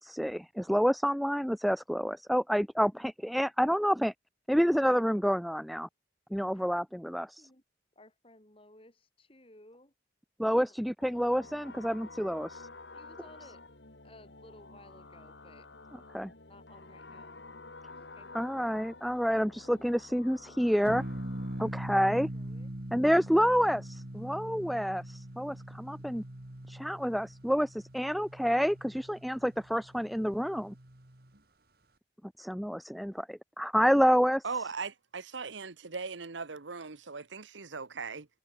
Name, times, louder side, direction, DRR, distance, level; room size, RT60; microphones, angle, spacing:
voice 1, 0.0-4.1 4.5-5.9 6.3-7.5 10.4-12.7 16.1-16.3 18.3-21.0 21.6-22.3 22.9-26.2 26.7-30.7 32.4-34.4, equal, ahead, 0.5 m, -28 dB
voice 2, 8.0-9.9 10.6-10.7 11.1-11.2 12.9-13.6 14.0-15.7 16.5-17.4 18.0-18.3 22.3-22.7, left 1 dB, 30° left, 4.1 m, -57 dB
sound 1, 11.0-21.7, left 3 dB, 75° left, 3.1 m, -50 dB
sound 2, 20.8-31.4, right 1 dB, 55° right, 2.3 m, -42 dB
voice 3, 34.4-38.3, right 4 dB, 85° right, 1.2 m, -39 dB
head